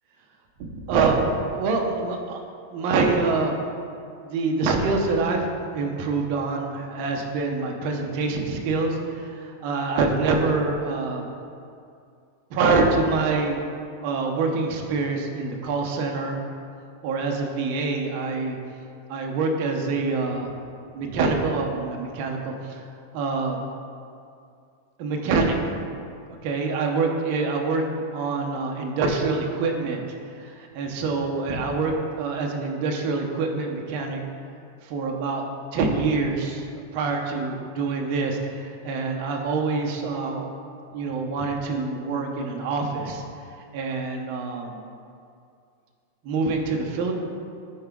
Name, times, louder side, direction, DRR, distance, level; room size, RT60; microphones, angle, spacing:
voice 1, 0.6-2.4 2.7-3.6 4.2-11.3 12.5-13.7 14.0-16.4 17.0-18.6 19.1-20.5 20.9-22.9 23.1-23.7 25.0-25.9 26.4-27.8 28.1-30.0 30.3-34.2 34.8-35.4 35.7-36.7 36.9-40.5 40.9-43.2 43.7-44.8 46.2-47.1, right 3 dB, 40° right, 1 dB, 0.8 m, -25 dB
9.6 x 4.6 x 3.8 m, 2.4 s
supercardioid pair, 175°, 0 cm